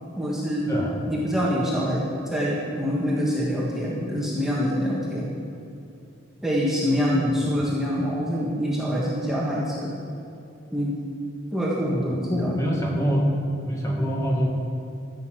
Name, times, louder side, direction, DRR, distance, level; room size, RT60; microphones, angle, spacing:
voice 1, 0.2-0.7 1.1-5.3 6.4-9.9 10.7-10.9 11.5-13.0, equal, ahead, -6 dB, 1.6 m, -25 dB
voice 2, 0.7-1.0 7.1-7.4 12.3-13.2 13.6-14.5, equal, 15° left, -2 dB, 1.9 m, -25 dB
14.5 x 6.6 x 7.8 m, 2.7 s
head